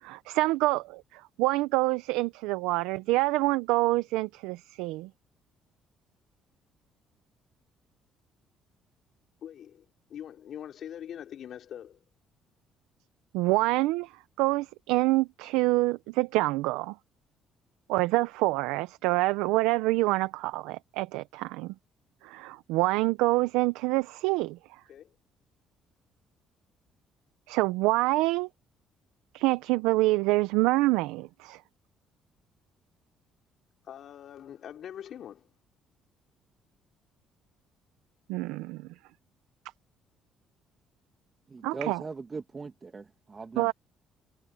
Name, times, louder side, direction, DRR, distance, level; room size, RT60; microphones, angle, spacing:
voice 1, 0.0-5.1 13.3-14.1 14.4-16.9 17.9-21.7 22.2-24.6 27.5-28.5 29.3-31.6 38.3-38.8 41.6-42.0 43.6-43.7, right 20 dB, 85° right, 0.7 m, -26 dB
voice 2, 9.4-9.8 10.1-12.0 24.9-25.1 33.8-35.5, left 10 dB, 60° left, 4.1 m, -43 dB
voice 3, 41.5-43.7, right 4 dB, 35° right, 2.4 m, -39 dB
supercardioid pair, 65°, 0 cm